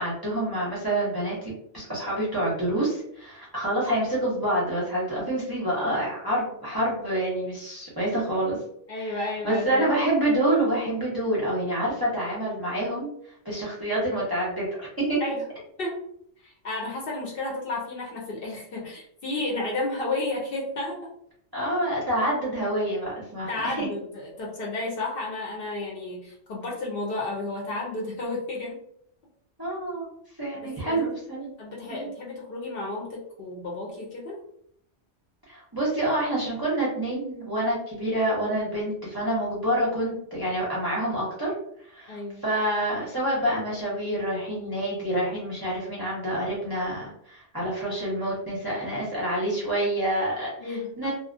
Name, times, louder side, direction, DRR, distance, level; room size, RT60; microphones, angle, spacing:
voice 1, 0.0-8.6 9.0-13.1 13.4-15.2 21.5-23.9 29.6-30.1 30.4-31.5 31.9-32.1 35.5-41.5 41.9-51.1, right 1 dB, 25° right, -6 dB, 0.5 m, -27 dB
voice 2, 8.9-9.9 15.2-15.5 15.8-16.1 16.4-21.1 23.5-28.8 30.6-31.1 31.6-34.4 42.1-42.4 50.6-51.1, left 2 dB, 60° left, -3 dB, 0.7 m, -32 dB
2.4 x 2.0 x 2.5 m, 0.70 s
omnidirectional pair, 1.2 m